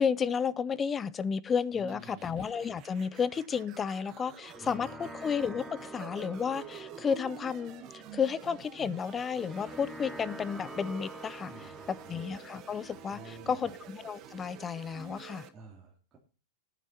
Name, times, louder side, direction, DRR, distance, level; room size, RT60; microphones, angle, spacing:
voice 1, 0.0-15.5, left 6 dB, 20° left, 0.6 m, -32 dB
voice 2, 1.7-2.3 4.6-5.1 11.5-12.2 13.1-13.7 15.5-16.2, right 3 dB, 20° right, 3.0 m, -50 dB
sound 1, 1.9-15.5, right 9 dB, 40° right, 1.6 m, -49 dB
sound 2, 4.2-15.2, right 1 dB, ahead, 1.3 m, -48 dB
14.0 x 9.2 x 4.3 m
hypercardioid pair, 125°, 0 cm